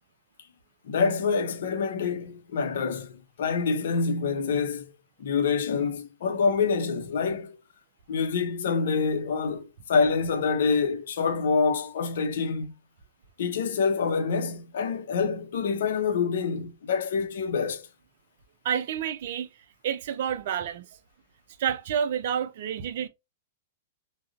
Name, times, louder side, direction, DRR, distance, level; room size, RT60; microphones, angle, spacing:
voice 1, 0.9-3.1 3.4-4.9 5.2-7.6 8.1-12.7 13.4-17.8, left 5 dB, 60° left, 0.6 m, -26 dB
voice 2, 18.6-19.5 19.8-20.9 21.6-23.1, right 8 dB, 55° right, 0.4 m, -29 dB
3.6 x 2.1 x 2.4 m
figure-of-eight pair, 105°, 0 cm